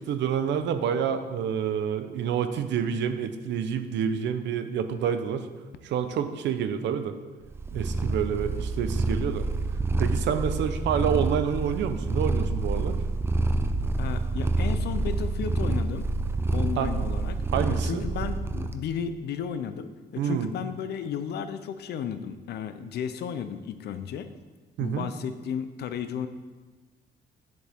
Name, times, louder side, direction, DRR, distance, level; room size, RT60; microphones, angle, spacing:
voice 1, 0.1-5.5 5.8-7.1 7.7-9.5 10.0-13.0 16.8-16.9 17.5-18.0 20.2-20.5 24.8-25.1, right 8 dB, 85° right, 9 dB, 0.7 m, -28 dB
Purr, 7.5-18.8, right 2 dB, 15° right, 0.4 m, -27 dB
voice 2, 14.0-16.1 16.5-17.4 17.7-24.3 24.8-26.3, left 8 dB, 65° left, 11 dB, 0.6 m, -34 dB
9.9 x 7.7 x 3.6 m, 1.3 s
cardioid pair, 165°, 18 cm